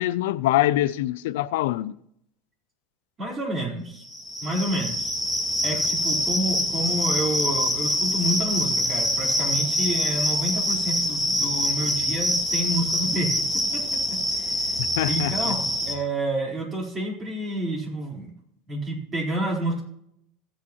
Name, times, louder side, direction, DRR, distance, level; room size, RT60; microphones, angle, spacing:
voice 1, 0.0-1.9 15.0-15.6, left 15 dB, 85° left, 0.4 m, -24 dB
voice 2, 3.2-4.0 4.4-5.1 5.6-13.3 13.7-13.8 14.1-14.6 15.1-18.3 18.7-19.8, right 1 dB, 25° right, 4.1 m, -29 dB
sound 1, 4.0-16.0, left 1 dB, 5° right, 1.8 m, -25 dB
16.5 x 8.6 x 3.0 m
supercardioid pair, 135°, 0 cm